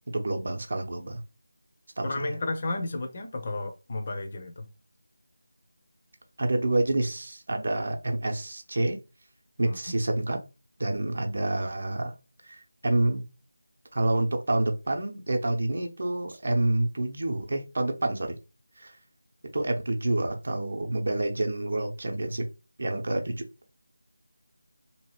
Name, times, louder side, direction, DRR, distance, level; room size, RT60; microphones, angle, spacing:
voice 1, 0.1-1.2 2.0-2.3 6.4-9.0 9.6-10.4 10.8-12.1 12.4-13.2 13.9-18.4 18.8-19.0 19.5-22.4 22.8-23.3, right 2 dB, 55° right, 0.6 m, -28 dB
voice 2, 2.0-4.7 9.6-9.8, left 2 dB, 35° left, 0.5 m, -32 dB
2.8 x 2.3 x 3.0 m
figure-of-eight pair, 165°, 0 cm